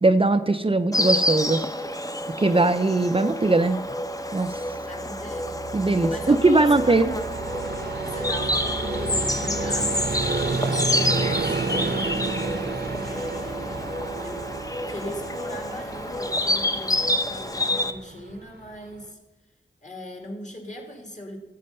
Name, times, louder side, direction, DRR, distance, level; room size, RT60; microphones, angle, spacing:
voice 1, 0.0-1.6 2.4-3.8 4.3-4.6 5.7-7.1, right 2 dB, 30° right, 8 dB, 0.5 m, -20 dB
Insect, 0.9-17.9, left 1 dB, 20° left, 0.7 m, -28 dB
Vehicle, 4.4-19.1, right 3 dB, 60° right, 0.8 m, -31 dB
voice 2, 4.8-7.4 8.0-12.4 13.0-14.0 14.2-14.5 14.9-19.2 19.8-21.4, left 1 dB, 40° left, 3 dB, 2.2 m, -40 dB
13.0 x 7.6 x 5.4 m, 1.1 s
wide cardioid pair, 55°, 19 cm